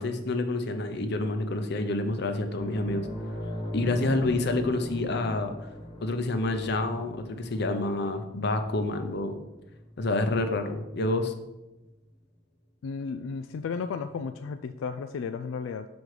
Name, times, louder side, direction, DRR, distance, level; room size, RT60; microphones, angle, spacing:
voice 1, 0.0-3.1 3.7-5.6 6.0-9.4 10.0-11.3, left 2 dB, 60° left, 7 dB, 0.7 m, -28 dB
sound 1, 2.5-11.5 11.8-12.0 14.0-14.1, left 1 dB, 30° left, 1.2 m, -40 dB
voice 2, 12.8-15.9, left 5 dB, 85° left, 9 dB, 0.3 m, -34 dB
6.1 x 5.2 x 4.9 m, 1.0 s
head